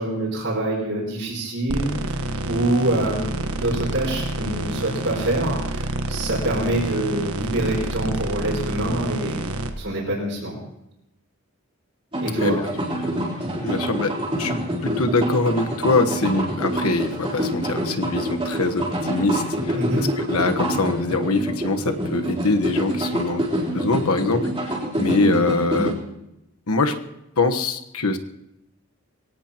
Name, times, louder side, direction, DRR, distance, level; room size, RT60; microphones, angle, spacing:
voice 1, 0.0-9.4 9.8-10.6 12.2-12.6 19.7-20.0, right 1 dB, 60° right, -7 dB, 5.5 m, -25 dB
sound 1, 1.7-9.7, right 1 dB, 80° right, 1.3 m, -28 dB
sound 2, 12.1-25.9, equal, 25° right, 3.6 m, -26 dB
voice 2, 13.6-26.0 26.7-27.0 27.4-28.2, left 3 dB, 80° left, 6 dB, 1.2 m, -23 dB
23.5 x 17.5 x 3.0 m, 0.87 s
head